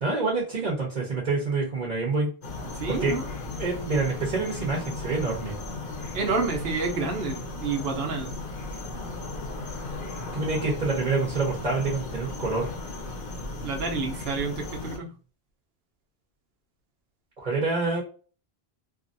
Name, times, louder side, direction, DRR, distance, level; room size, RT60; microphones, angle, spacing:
voice 1, 0.0-2.3 2.9-3.1 3.5-5.6 10.3-12.7 17.4-18.0, right 3 dB, 45° right, -2 dB, 1.0 m, -27 dB
sound 1, 2.4-15.0, left 2 dB, 55° left, 0.9 m, -36 dB
voice 2, 2.8-3.2 6.1-8.4 13.6-15.1, right 4 dB, 70° right, 3 dB, 1.0 m, -29 dB
2.8 x 2.6 x 2.5 m, 0.39 s
omnidirectional pair, 1.1 m